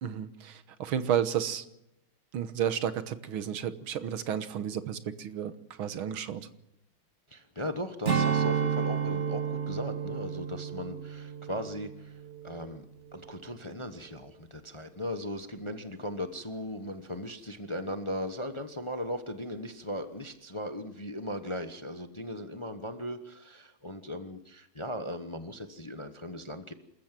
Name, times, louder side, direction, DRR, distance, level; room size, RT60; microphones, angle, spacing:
voice 1, 0.0-1.7 2.3-5.5 5.8-6.5, right 9 dB, 85° right, 12 dB, 2.0 m, -32 dB
voice 2, 7.3-12.8 13.1-26.7, left 1 dB, 20° left, 9 dB, 0.8 m, -38 dB
Strum, 8.1-12.8 13.1-13.4, right 7 dB, 35° right, 1.9 m, -31 dB
27.5 x 14.0 x 7.6 m, 0.86 s
omnidirectional pair, 2.2 m